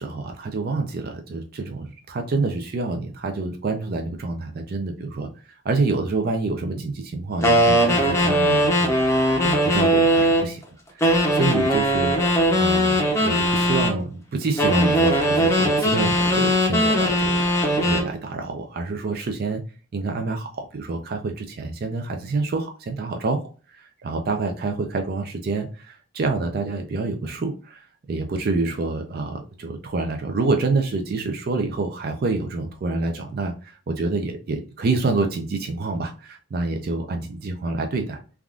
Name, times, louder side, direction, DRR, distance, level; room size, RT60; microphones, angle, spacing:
voice 1, 0.0-8.9 9.4-10.6 10.9-12.2 12.6-17.5 17.8-19.6 19.9-23.4 23.7-38.2, right 3 dB, 40° right, 4 dB, 0.4 m, -27 dB
sound 1, 7.4-10.5 11.0-14.0 14.6-18.1, equal, 10° left, 0.6 m, -20 dB
3.4 x 2.4 x 2.3 m, 0.36 s
head